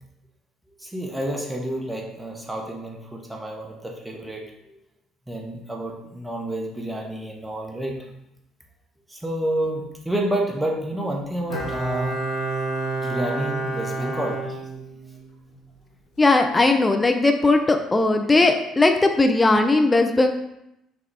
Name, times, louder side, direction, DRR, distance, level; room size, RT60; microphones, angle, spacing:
voice 1, 0.8-4.8 5.3-8.0 9.1-12.2 13.0-14.8, right 1 dB, 10° right, -1 dB, 1.0 m, -29 dB
Bowed string instrument, 11.5-15.2 15.5-15.6, right 2 dB, 60° left, 0.8 m, -29 dB
voice 2, 16.2-20.3, left 2 dB, 20° left, 5 dB, 0.4 m, -18 dB
6.1 x 2.4 x 3.4 m, 0.84 s
figure-of-eight pair, 50°, 0 cm